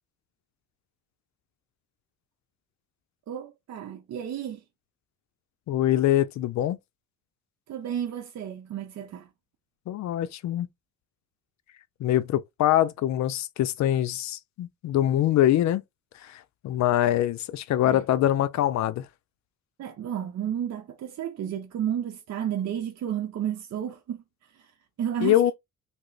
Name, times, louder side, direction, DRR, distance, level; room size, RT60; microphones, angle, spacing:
voice 1, 3.3-4.6 7.7-9.3 17.8-18.0 19.8-24.2 24.5-24.7 25.0-25.5, right 9 dB, 60° right, 0.6 m, -32 dB
voice 2, 5.7-6.8 9.9-10.7 12.0-15.8 16.1-19.1 25.2-25.5, left 12 dB, 65° left, 0.5 m, -24 dB
2.9 x 2.1 x 3.9 m
cardioid pair, 90°, 30 cm